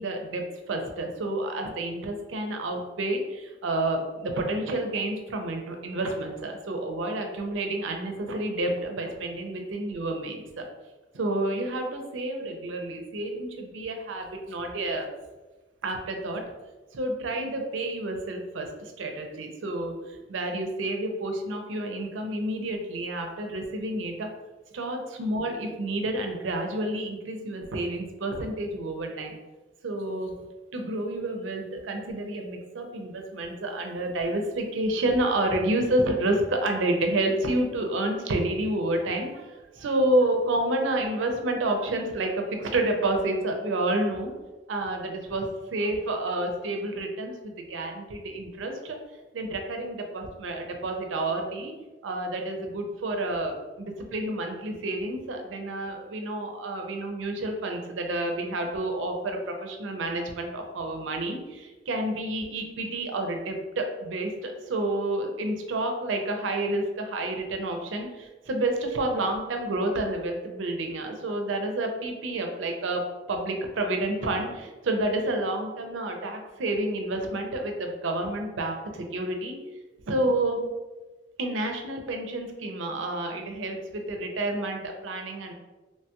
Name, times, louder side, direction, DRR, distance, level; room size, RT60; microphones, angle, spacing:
voice 1, 0.0-10.6 11.1-15.1 15.8-16.4 16.9-24.3 24.7-29.4 29.8-30.3 30.7-44.3 44.7-49.0 49.3-51.7 52.0-73.0 73.3-79.6 80.1-80.7 81.4-85.5, right 1 dB, 90° right, 3 dB, 0.5 m, -29 dB
3.0 x 2.8 x 2.2 m, 1.2 s
head